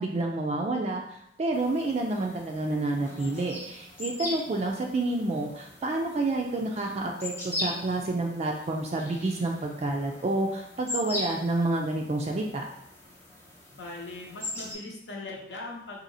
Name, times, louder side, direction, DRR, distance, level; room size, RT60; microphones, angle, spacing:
voice 1, 0.0-12.6, right 2 dB, 35° right, 0 dB, 0.3 m, -29 dB
sound 1, 1.5-14.7, left 2 dB, 15° left, 0.8 m, -40 dB
voice 2, 13.7-16.0, left 2 dB, 70° left, -2 dB, 0.8 m, -40 dB
4.1 x 2.8 x 2.6 m, 0.77 s
head